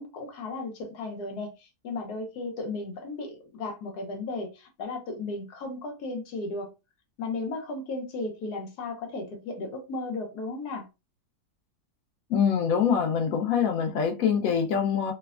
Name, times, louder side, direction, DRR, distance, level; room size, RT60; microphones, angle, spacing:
voice 1, 0.0-6.7 7.2-10.9, left 3 dB, 90° left, 1.3 m, -35 dB
voice 2, 12.3-15.1, left 7 dB, 70° left, 0.9 m, -24 dB
3.2 x 2.1 x 2.3 m
omnidirectional pair, 1.6 m